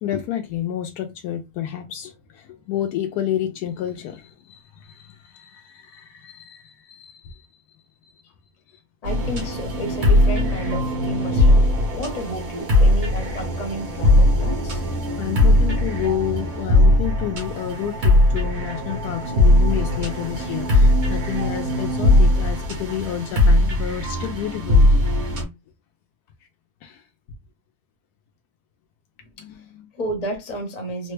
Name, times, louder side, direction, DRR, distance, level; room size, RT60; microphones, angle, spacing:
voice 1, 0.0-7.4 8.1-8.2 15.2-24.9 26.8-27.0 29.4-29.9, left 11 dB, 90° left, 1.2 m, -30 dB
voice 2, 9.0-11.6 11.9-14.8 29.4-29.5 29.9-31.1, right 1 dB, 30° left, 1.0 m, -31 dB
sound 1, 9.0-25.4, left 1 dB, 65° right, 1.5 m, -19 dB
3.6 x 2.1 x 3.2 m
omnidirectional pair, 1.6 m